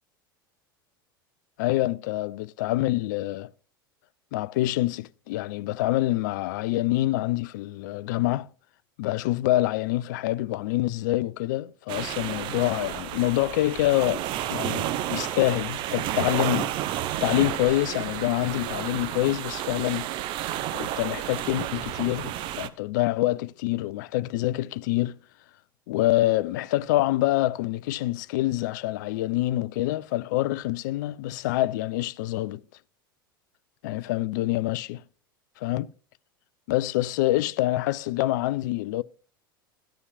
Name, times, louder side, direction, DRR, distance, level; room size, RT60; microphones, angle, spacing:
voice 1, 1.6-3.5 4.3-8.5 9.0-16.7 17.2-20.1 20.7-25.2 25.9-32.6 33.8-35.0 35.6-35.9 36.7-39.0, left 16 dB, 55° left, 0.4 m, -26 dB
sound 1, 11.9-22.7, right 12 dB, 45° right, 0.7 m, -31 dB
14.0 x 9.6 x 2.5 m
figure-of-eight pair, 80°, 12 cm